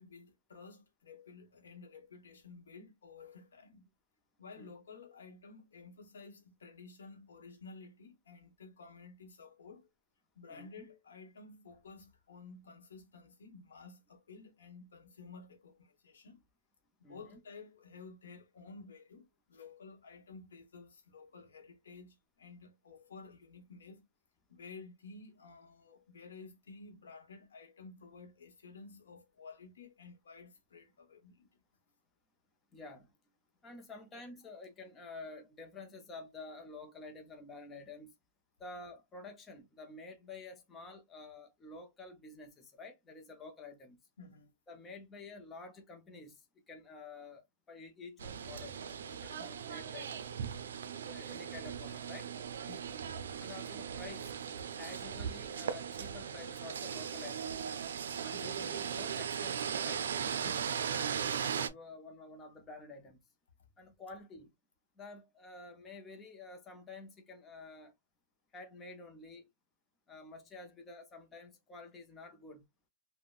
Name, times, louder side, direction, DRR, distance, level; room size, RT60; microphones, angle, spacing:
voice 1, 0.0-3.9 4.4-9.9 10.4-16.4 17.1-24.1 24.5-31.5 44.2-44.5 49.4-49.5 52.7-53.0 58.3-58.7 60.4-60.7, left 4 dB, 90° left, 1.0 m, -53 dB
voice 2, 10.5-10.9 17.0-17.4 32.7-33.1 33.6-38.1 38.6-44.0 44.7-48.8 49.1-50.3 51.0-52.3 53.4-54.3 54.8-57.5 58.2-60.0 61.4-63.2 63.8-64.5 65.0-67.9 68.5-69.5 70.1-72.6, left 3 dB, 15° left, 0.6 m, -50 dB
sound 1, 48.2-61.7, right 7 dB, 80° right, 0.5 m, -38 dB
3.5 x 2.1 x 2.3 m
hypercardioid pair, 155°, 0 cm